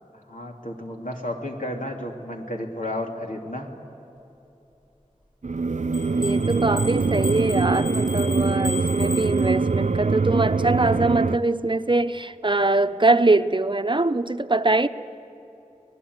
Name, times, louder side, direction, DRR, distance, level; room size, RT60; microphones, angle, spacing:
voice 1, 0.3-3.8, left 1 dB, 80° left, 0 dB, 2.8 m, -32 dB
sound 1, 5.4-11.4, right 4 dB, 65° right, 0.5 m, -23 dB
sound 2, 5.9-9.9, left 3 dB, 35° left, 7.5 m, -36 dB
voice 2, 6.2-14.9, right 2 dB, 40° right, 10 dB, 0.8 m, -22 dB
26.0 x 19.0 x 9.5 m, 2.9 s
wide cardioid pair, 45°, 13 cm